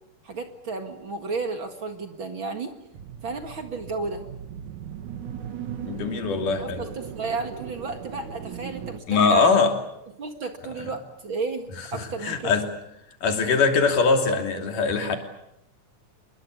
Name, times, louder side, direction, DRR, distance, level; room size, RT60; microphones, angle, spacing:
voice 1, 0.2-2.7 3.2-4.3 6.6-9.4 10.2-12.5, right 4 dB, 45° right, 6 dB, 2.4 m, -33 dB
sound 1, 2.9-9.0, right 8 dB, 70° right, 2.9 m, -38 dB
voice 2, 5.8-6.8 9.1-9.7 10.8-10.9 11.9-12.6 13.2-15.2, left 4 dB, 80° left, 4 dB, 4.6 m, -22 dB
27.5 x 21.5 x 8.5 m, 0.81 s
omnidirectional pair, 3.6 m